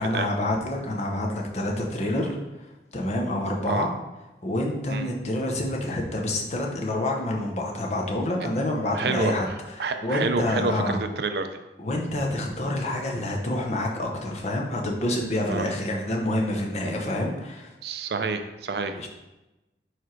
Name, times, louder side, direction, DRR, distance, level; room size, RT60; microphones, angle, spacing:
voice 1, 0.0-2.4 2.9-3.9 4.4-9.5 9.8-11.0 11.8-17.7 18.9-19.1, left 1 dB, 40° left, 0 dB, 0.9 m, -27 dB
voice 2, 8.9-9.5 9.8-11.5 13.2-13.3 15.5-15.7 17.8-19.0, right 4 dB, 65° right, 8 dB, 0.5 m, -28 dB
4.8 x 4.4 x 4.6 m, 1.0 s
head